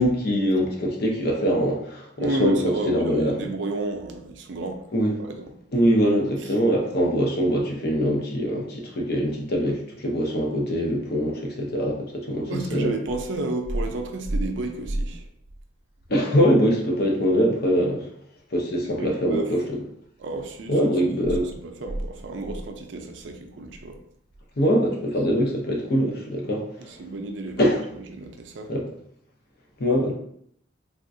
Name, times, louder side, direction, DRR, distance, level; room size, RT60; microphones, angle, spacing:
voice 1, 0.0-3.5 4.9-5.1 5.7-12.9 16.1-18.0 18.5-19.8 20.7-21.5 24.6-26.6 27.6-27.8 28.7-28.9 29.8-30.1, equal, 55° left, 0 dB, 0.7 m, -23 dB
voice 2, 2.2-4.8 5.2-5.5 12.5-15.2 19.0-19.5 20.2-20.9 21.4-24.0 26.9-27.7 28.0-28.7, right 2 dB, 75° right, 4 dB, 0.5 m, -31 dB
3.5 x 2.3 x 2.6 m, 0.70 s
head